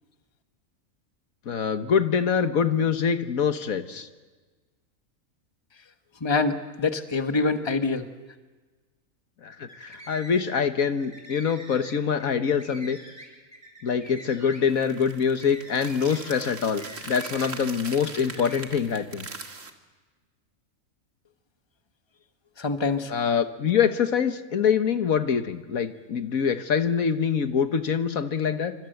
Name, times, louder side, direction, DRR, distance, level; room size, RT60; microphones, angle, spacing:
voice 1, 1.5-4.1 9.4-13.0 13.8-19.3 23.1-28.7, left 7 dB, 85° left, 8 dB, 1.7 m, -25 dB
voice 2, 6.2-8.1 22.6-23.1, left 3 dB, 20° left, 7 dB, 1.3 m, -25 dB
sound 1, 9.6-10.6 10.9-17.9 18.2-18.6, right 1 dB, 10° right, 6.9 m, -46 dB
sound 2, 14.7-19.7, right 4 dB, 65° right, 2.3 m, -40 dB
28.0 x 25.5 x 7.9 m, 1.3 s
omnidirectional pair, 1.4 m